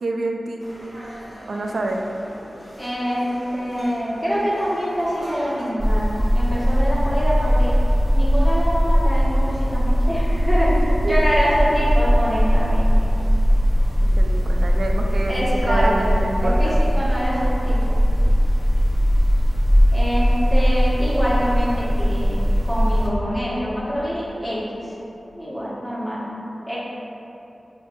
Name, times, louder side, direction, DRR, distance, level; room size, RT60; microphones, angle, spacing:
voice 1, 0.0-0.6 1.5-2.0 10.5-11.2 14.2-15.3 15.6-16.8, right 2 dB, 85° right, 1 dB, 0.3 m, -27 dB
sound 1, 0.6-5.7, equal, 45° right, 1.5 m, -41 dB
voice 2, 2.8-7.7 8.1-10.7 11.0-12.9 14.4-14.5 15.3-16.1 16.4-17.9 19.9-24.9 25.3-26.2 26.7-26.8, equal, 10° left, -9 dB, 1.3 m, -25 dB
sound 2, 5.8-23.1, equal, 25° right, 1.3 m, -19 dB
4.9 x 3.3 x 2.6 m, 2.9 s
cardioid pair, 55°, 0 cm